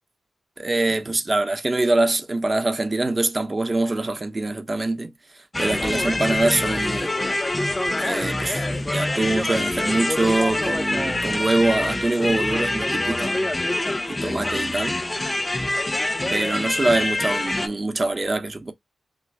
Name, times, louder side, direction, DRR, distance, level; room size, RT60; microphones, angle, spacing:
voice 1, 0.6-5.1 5.6-7.1 8.0-13.3 14.1-15.0 16.3-18.7, right 2 dB, 35° right, 0.7 m, -24 dB
sound 1, 5.5-17.7, left 2 dB, 20° left, 0.5 m, -25 dB
3.2 x 2.0 x 3.3 m
cardioid pair, 75°, 0 cm